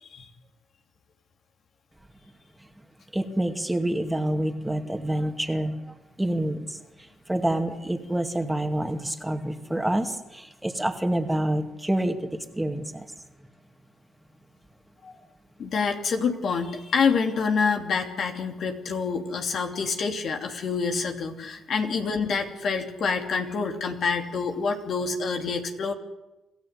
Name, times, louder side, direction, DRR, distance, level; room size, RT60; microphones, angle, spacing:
voice 1, 3.1-13.1, right 1 dB, 10° right, 5 dB, 2.4 m, -28 dB
voice 2, 15.6-25.9, left 5 dB, 60° left, 4 dB, 2.9 m, -27 dB
27.0 x 14.5 x 8.3 m, 0.99 s
supercardioid pair, 70°, 0 cm